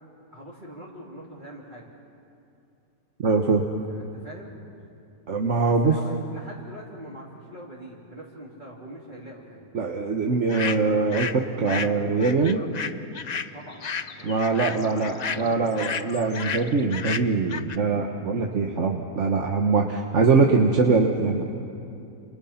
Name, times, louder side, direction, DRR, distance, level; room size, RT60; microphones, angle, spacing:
voice 1, 0.3-1.9 3.9-4.6 5.6-9.8 13.5-16.1, equal, 30° right, -5 dB, 3.0 m, -42 dB
voice 2, 3.2-3.7 5.3-6.0 9.7-12.6 14.2-21.4, right 4 dB, 55° right, 2 dB, 1.5 m, -22 dB
sound 1, 10.5-11.4 11.7-17.8, left 6 dB, 50° left, 0.5 m, -32 dB
29.5 x 28.0 x 5.8 m, 2.7 s
omnidirectional pair, 1.6 m